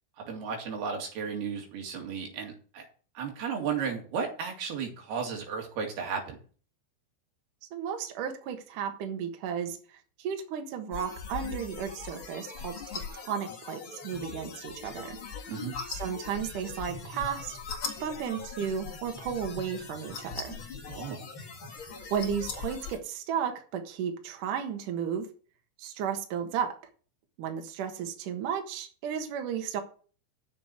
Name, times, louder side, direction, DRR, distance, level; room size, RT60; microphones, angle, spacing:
voice 1, 0.3-2.9 3.2-6.4 15.5-15.7 20.9-21.2, right 6 dB, 55° right, 1 dB, 3.9 m, -34 dB
voice 2, 7.7-9.8 10.2-15.2 15.9-17.6 18.0-20.6 22.1-25.3 25.8-26.7 27.4-29.8, right 8 dB, 75° right, 5 dB, 1.9 m, -34 dB
sound 1, 10.9-23.0, left 5 dB, 75° left, 1.1 m, -40 dB
7.4 x 7.3 x 8.3 m, 0.40 s
omnidirectional pair, 5.8 m